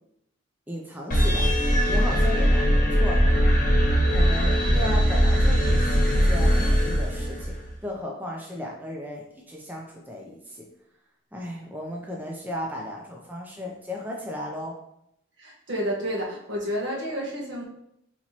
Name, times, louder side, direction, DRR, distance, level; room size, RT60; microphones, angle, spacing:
voice 1, 0.7-1.5 1.9-3.4 4.1-7.5 7.8-10.7 11.3-14.8, left 1 dB, 10° right, -1 dB, 0.4 m, -35 dB
sound 1, 1.1-7.7, equal, 45° left, 0.9 m, -20 dB
voice 2, 15.4-17.7, equal, 70° right, -4 dB, 1.1 m, -30 dB
4.2 x 2.9 x 2.8 m, 0.78 s
head